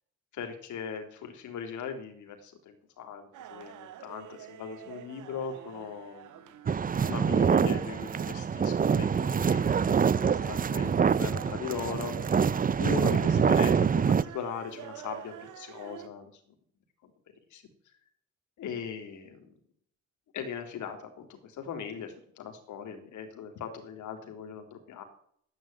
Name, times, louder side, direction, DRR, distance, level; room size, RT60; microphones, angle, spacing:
voice 1, 0.3-6.5 7.1-12.4 12.8-16.3 17.0-17.1 17.5-17.6 18.6-19.5 20.3-25.0, left 7 dB, 75° left, 5 dB, 3.8 m, -39 dB
sound 1, 3.3-16.1, right 11 dB, 90° right, 1.6 m, -47 dB
sound 2, 6.7-14.2, right 6 dB, 30° right, 0.6 m, -25 dB
13.0 x 10.5 x 9.3 m, 0.65 s
cardioid pair, 90°, 30 cm